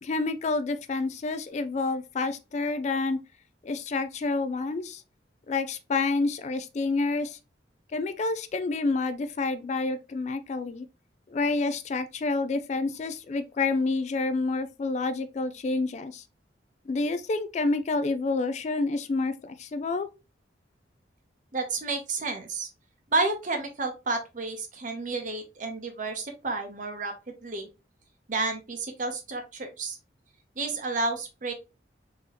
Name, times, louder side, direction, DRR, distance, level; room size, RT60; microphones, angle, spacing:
voice 1, 0.0-3.2 3.6-5.0 5.5-7.4 7.9-10.9 11.3-16.2 16.9-20.1, left 3 dB, 40° left, 0.3 m, -28 dB
voice 2, 21.5-22.7 23.1-27.7 28.3-30.0 30.6-31.5, right 3 dB, 45° right, 0.8 m, -31 dB
3.8 x 2.8 x 2.9 m
head